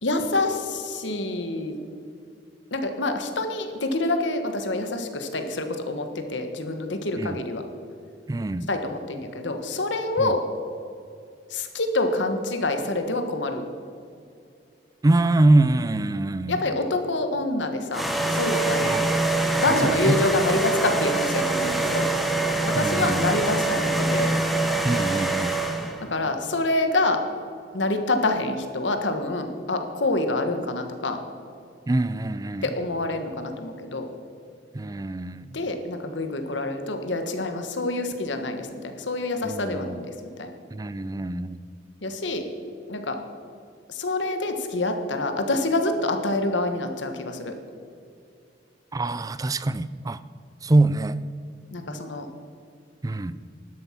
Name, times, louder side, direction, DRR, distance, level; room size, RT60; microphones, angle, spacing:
voice 1, 0.0-1.8 2.7-7.6 8.7-10.4 11.5-13.6 16.5-18.0 18.3-18.9 19.6-22.1 22.6-24.3 26.0-27.2 27.7-31.2 32.6-34.1 35.5-40.0 40.4-40.5 42.0-42.4 42.9-43.2 43.9-47.5 51.7-52.3, left 2 dB, 85° left, 6 dB, 1.5 m, -26 dB
voice 2, 8.3-8.7 10.2-10.3 15.0-16.6 18.8-19.1 19.7-20.2 22.7-23.4 24.8-25.6 31.9-32.7 34.7-35.6 39.4-40.0 40.7-41.6 48.9-50.2 50.6-51.2 53.0-53.4, right 2 dB, 20° right, 15 dB, 0.4 m, -24 dB
sound 1, 17.9-26.1, right 2 dB, ahead, 1.1 m, -24 dB
12.0 x 11.5 x 5.9 m, 2.5 s
head